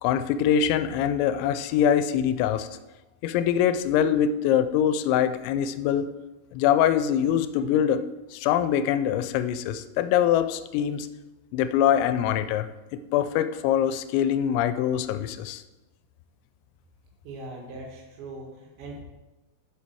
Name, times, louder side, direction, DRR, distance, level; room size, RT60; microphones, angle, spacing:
voice 1, 0.0-2.7 3.2-6.1 6.5-8.1 8.3-11.1 11.5-15.6, left 9 dB, 85° left, 12 dB, 2.9 m, -24 dB
voice 2, 17.2-19.0, right 2 dB, 75° right, -1 dB, 4.0 m, -40 dB
7.4 x 7.3 x 4.5 m, 1.1 s
omnidirectional pair, 5.2 m